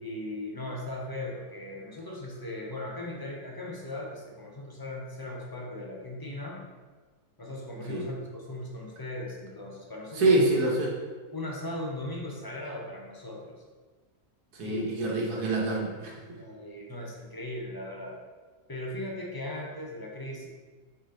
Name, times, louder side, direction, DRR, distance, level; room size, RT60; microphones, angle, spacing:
voice 1, 0.0-6.6 7.4-10.5 11.3-13.6 14.6-15.0 16.3-18.2 18.7-20.5, left 1 dB, 20° left, -2 dB, 0.6 m, -38 dB
voice 2, 10.1-10.9 14.5-16.1, right 2 dB, 80° right, -2 dB, 1.7 m, -25 dB
5.0 x 5.0 x 3.8 m, 1.4 s
omnidirectional pair, 1.6 m